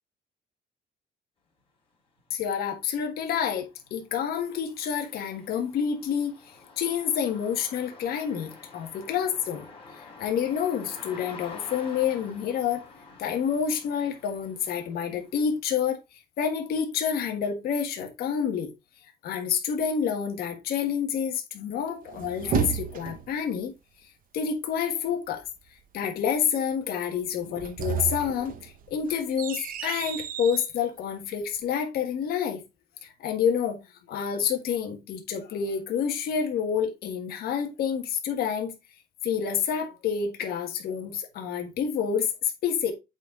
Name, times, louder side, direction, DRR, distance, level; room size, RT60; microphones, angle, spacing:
sound 1, 2.2-2.3 2.7-15.6, left 4 dB, 30° left, 3.3 m, -48 dB
voice 1, 2.3-9.7 9.9-12.8 13.2-16.0 16.4-18.7 19.2-23.7 24.3-25.4 25.9-32.6 33.0-33.8 34.1-38.7 39.2-42.9, left 7 dB, 65° left, 1.6 m, -28 dB
sound 2, 21.9-23.4 27.4-30.7, right 8 dB, 55° right, 0.9 m, -32 dB
8.1 x 4.2 x 3.8 m
cardioid pair, 110°, 17 cm